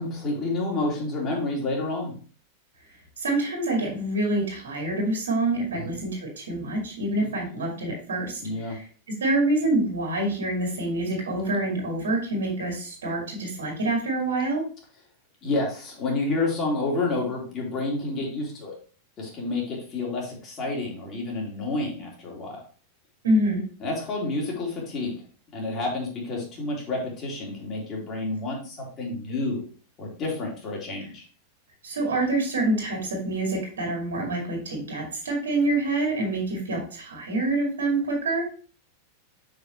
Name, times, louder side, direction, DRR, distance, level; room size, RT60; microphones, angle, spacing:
voice 1, 0.0-2.1 5.8-5.9 8.4-8.7 15.4-18.8 19.2-22.6 23.8-25.1 25.5-29.6 30.0-31.2, left 2 dB, 30° left, -2 dB, 2.6 m, -29 dB
voice 2, 3.2-8.8 9.2-14.6 23.2-23.6 31.8-38.5, right 2 dB, 65° right, 0 dB, 2.1 m, -26 dB
6.5 x 5.2 x 3.0 m, 0.41 s
figure-of-eight pair, 90°, 0 cm